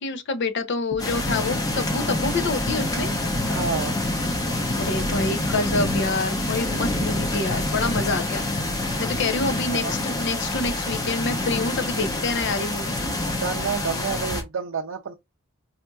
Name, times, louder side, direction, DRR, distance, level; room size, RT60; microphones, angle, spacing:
voice 1, 0.0-3.1 4.7-8.4 9.0-13.0, left 3 dB, 60° left, 0.6 m, -27 dB
sound 1, 1.0-14.4, left 1 dB, 20° left, 0.8 m, -26 dB
voice 2, 3.4-4.0 9.7-10.0 13.4-15.1, right 6 dB, 70° right, 0.5 m, -29 dB
4.2 x 2.6 x 2.3 m
head